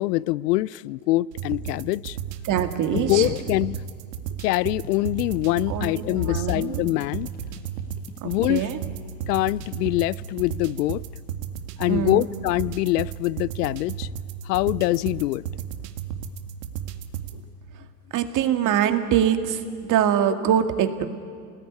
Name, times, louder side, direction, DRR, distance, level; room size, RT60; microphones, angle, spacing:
voice 1, 0.0-2.2 2.9-3.8 4.4-7.3 8.2-8.6 9.3-11.0 11.8-14.1 14.5-15.4, left 18 dB, 75° left, 0.6 m, -24 dB
sound 1, 1.3-17.4, right 9 dB, 75° right, 2.0 m, -34 dB
voice 2, 2.4-3.3 5.7-6.8 8.2-8.8 11.9-12.3 18.1-21.0, right 9 dB, 40° right, 2.1 m, -24 dB
sound 2, 4.8-6.4 7.0-8.7 9.4-10.5, left 4 dB, 20° left, 2.4 m, -48 dB
27.5 x 20.0 x 9.6 m
supercardioid pair, 120°, 48 cm